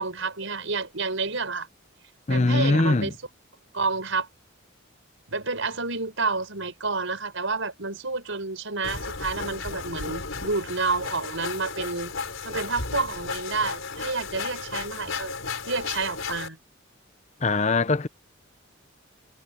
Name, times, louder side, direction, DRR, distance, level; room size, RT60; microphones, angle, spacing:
voice 1, 0.0-1.7 2.3-3.1 3.7-4.3 5.3-12.1 12.4-15.3 15.7-16.6, right 4 dB, 70° right, 5.8 m, -29 dB
voice 2, 2.3-3.1 17.4-18.1, left 3 dB, 35° left, 0.7 m, -22 dB
sound 1, 8.8-16.5, left 4 dB, 70° left, 4.2 m, -34 dB
head